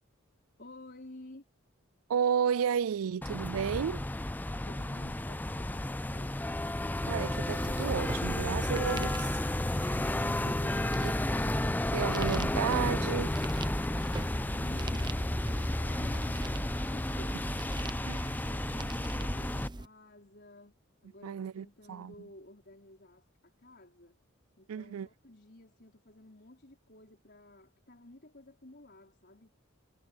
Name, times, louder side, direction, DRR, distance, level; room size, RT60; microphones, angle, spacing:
voice 1, 0.6-1.4 4.6-6.4 14.5-17.4 17.9-20.7 21.0-24.2 24.6-29.5, left 1 dB, 50° left, 4.7 m, -53 dB
voice 2, 2.1-4.0 7.1-9.4 9.8-10.0 11.0-11.1 11.9-13.4 18.1-18.2 21.2-22.1 24.7-25.1, right 7 dB, 85° right, 0.4 m, -32 dB
sound 1, 3.2-19.7, left 1 dB, 10° left, 0.4 m, -32 dB
sound 2, 7.4-19.9, right 1 dB, 20° right, 0.8 m, -40 dB
head